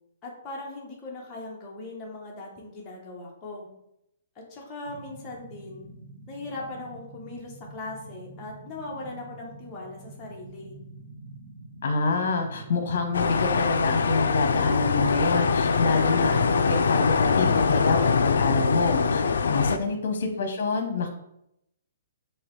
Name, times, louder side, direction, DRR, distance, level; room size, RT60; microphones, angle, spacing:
voice 1, 0.2-3.7 4.3-5.9 6.3-10.8, left 2 dB, 15° left, -3 dB, 1.0 m, -39 dB
sound 1, 4.9-17.7, right 2 dB, 55° right, 1.2 m, -46 dB
voice 2, 11.8-21.1, left 3 dB, 55° left, 5 dB, 1.0 m, -27 dB
sound 2, 13.1-19.8, left 5 dB, 90° left, 0.3 m, -23 dB
3.8 x 2.9 x 4.7 m, 0.79 s
hypercardioid pair, 170°, 0 cm